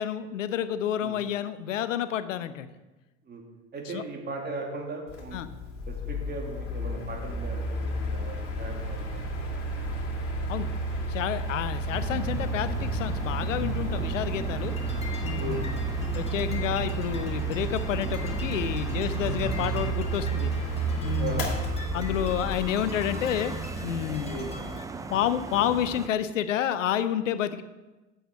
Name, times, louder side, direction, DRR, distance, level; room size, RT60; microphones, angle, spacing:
voice 1, 0.0-2.7 3.9-4.0 5.3-5.5 10.5-10.7 11.1-14.7 15.2-20.5 21.0-21.5 21.9-23.5 23.8-24.4 25.1-27.6, left 10 dB, 80° left, 13 dB, 0.7 m, -29 dB
voice 2, 3.7-5.4 5.9-9.5 13.9-14.1 15.4-15.6 21.2-21.5 24.2-24.5, right 3 dB, 25° right, 1 dB, 2.2 m, -38 dB
Mechanical fan, 5.1-24.7, right 1 dB, 35° left, 2.5 m, -32 dB
sound 1, 11.9-26.1, right 4 dB, 10° right, 0.4 m, -36 dB
sound 2, 14.6-24.9, left 4 dB, 15° left, 1.5 m, -45 dB
8.1 x 7.9 x 4.8 m, 1.1 s
hypercardioid pair, 90°, 38 cm